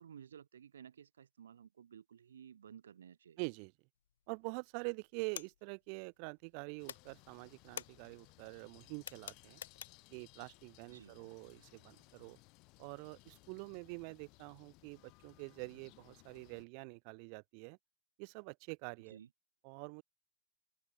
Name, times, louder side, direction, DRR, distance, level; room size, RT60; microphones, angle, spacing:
voice 1, 0.0-3.4 10.9-11.1 19.1-19.3, right 8 dB, 75° right, 5.9 m, -55 dB
voice 2, 3.4-3.7 4.3-9.6 10.1-12.4 12.8-17.8 18.2-19.2 19.6-20.0, right 40 dB or more, 45° right, 7.5 m, -46 dB
sound 1, 4.1-4.6 4.8-6.6 6.8-10.2, left 9 dB, 70° left, 1.8 m, -49 dB
sound 2, 6.8-16.7, left 26 dB, 45° left, 6.4 m, -63 dB
open air
hypercardioid pair, 105°, 0 cm